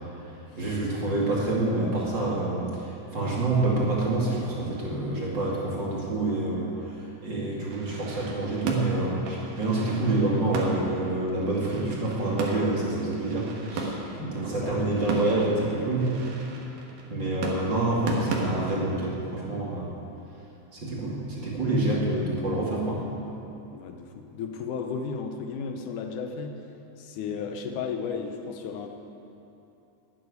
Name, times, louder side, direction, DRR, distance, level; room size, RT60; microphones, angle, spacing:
voice 1, 0.6-16.1 17.0-20.0 20.7-23.0, right 2 dB, 35° right, -5 dB, 2.8 m, -27 dB
sound 1, 7.7-18.4, right 3 dB, 80° right, 3.2 m, -36 dB
voice 2, 14.5-15.1 17.5-18.1 23.7-26.6 27.0-28.9, left 5 dB, 80° left, 5 dB, 2.4 m, -35 dB
12.0 x 9.6 x 9.8 m, 2.8 s
omnidirectional pair, 3.6 m